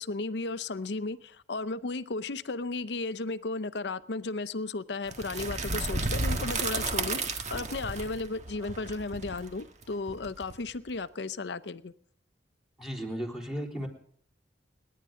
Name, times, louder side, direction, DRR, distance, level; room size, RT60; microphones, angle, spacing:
voice 1, 0.0-11.9, left 3 dB, 70° left, 14 dB, 0.7 m, -34 dB
sound 1, 5.1-10.9, right 3 dB, 40° right, 1.6 m, -33 dB
voice 2, 12.8-13.9, equal, ahead, 1 dB, 3.5 m, -35 dB
29.5 x 10.5 x 3.7 m, 0.63 s
head